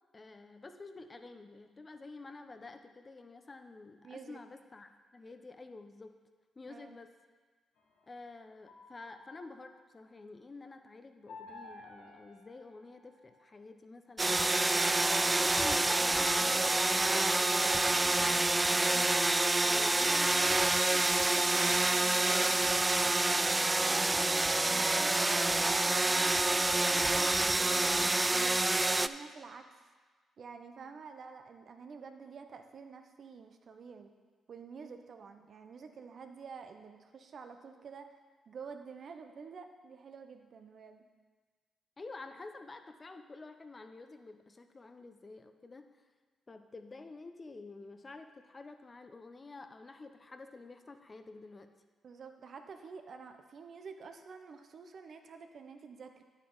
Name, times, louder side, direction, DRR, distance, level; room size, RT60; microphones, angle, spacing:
voice 1, 0.1-6.1 6.6-7.1 8.1-19.2 19.6-20.2 42.0-45.9 46.5-51.7, left 3 dB, 35° left, 8 dB, 0.8 m, -50 dB
voice 2, 4.0-4.4 6.7-7.0 17.6-18.4 18.7-19.3 19.7-22.7 23.0-23.4 23.8-28.6 29.0-29.6 30.4-34.1 34.5-38.1 38.5-41.0 52.0-56.2, right 5 dB, 60° right, 6 dB, 0.8 m, -49 dB
sound 1, 7.8-10.0 11.3-13.5, left 3 dB, 80° left, 1.4 m, -53 dB
sound 2, 14.2-29.1, right 2 dB, 20° right, 0.3 m, -27 dB
9.4 x 8.1 x 4.0 m, 1.4 s
supercardioid pair, 50°, 0 cm